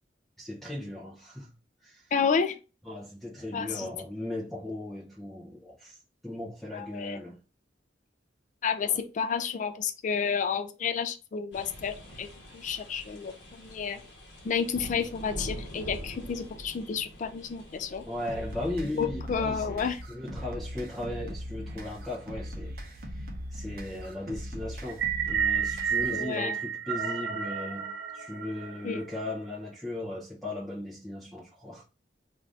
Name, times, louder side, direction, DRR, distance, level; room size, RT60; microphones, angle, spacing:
voice 1, 0.4-1.5 1.8-2.1 2.8-6.0 6.2-7.4 8.8-9.0 18.1-31.8, left 1 dB, ahead, 0.6 m, -37 dB
voice 2, 2.1-2.6 3.5-3.9 6.7-7.2 8.6-12.3 12.5-14.0 14.4-18.0 18.9-20.0 26.1-26.6 28.8-29.0, left 6 dB, 45° left, 0.3 m, -30 dB
sound 1, 11.5-18.9, equal, 80° left, 0.9 m, -44 dB
sound 2, 18.3-26.3, equal, 55° right, 0.8 m, -40 dB
sound 3, 24.9-29.2, right 7 dB, 85° right, 0.4 m, -31 dB
2.6 x 2.5 x 3.3 m
head